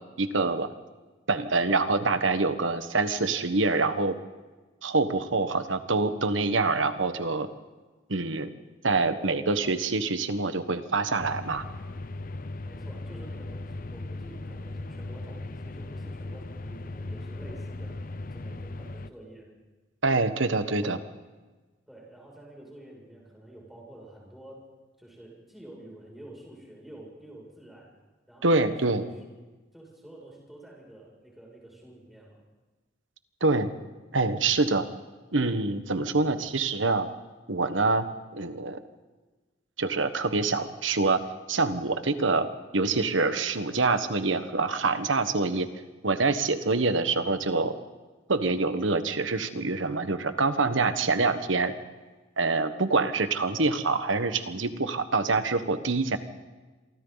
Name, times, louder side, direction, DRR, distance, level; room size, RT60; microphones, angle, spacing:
voice 1, 0.2-0.7 1.3-4.2 4.8-7.5 8.1-8.5 8.8-11.6 20.0-21.0 28.4-29.0 33.4-33.7 34.1-34.9 35.3-37.1 37.5-38.1 38.3-38.8 39.8-41.2 41.5-42.5 42.7-45.7 46.0-47.7 48.3-51.7 52.4-56.2, right 3 dB, 90° right, 10 dB, 1.4 m, -25 dB
sound 1, 11.2-19.1, left 2 dB, 45° left, 0.7 m, -38 dB
voice 2, 12.6-18.1 18.3-19.5 20.7-21.1 21.9-24.6 25.0-27.9 28.3-29.1 29.7-32.4 36.0-36.3, right 1 dB, ahead, -3 dB, 6.8 m, -48 dB
27.5 x 24.0 x 4.1 m, 1.2 s
head